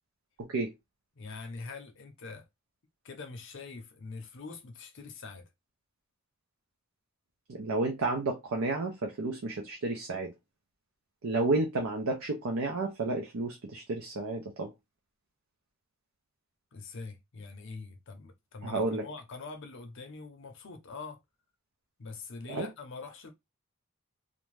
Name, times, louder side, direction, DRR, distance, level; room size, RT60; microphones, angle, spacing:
voice 1, 0.4-0.7 7.5-10.3 11.2-14.7 18.6-19.0 22.5-22.7, right 2 dB, 75° right, 0.5 m, -31 dB
voice 2, 1.2-2.4 3.0-5.5 16.7-21.2 22.0-23.3, left 4 dB, 60° left, 0.6 m, -44 dB
2.6 x 2.1 x 3.1 m
head